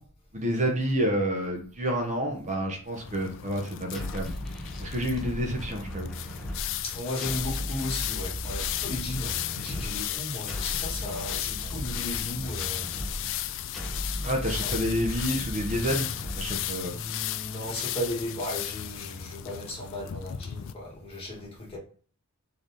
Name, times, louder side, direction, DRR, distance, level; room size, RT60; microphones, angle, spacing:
voice 1, 0.3-4.3 4.8-6.1 14.2-16.1 16.3-17.0, equal, 35° right, 0.9 m, -29 dB
sound 1, 2.9-20.7, left 13 dB, 60° left, 0.3 m, -35 dB
sound 2, 3.9-17.0, equal, ahead, 0.8 m, -37 dB
voice 2, 6.8-12.9 14.6-14.8 16.8-21.8, left 1 dB, 25° left, 1.8 m, -35 dB
3.9 x 3.4 x 4.0 m
head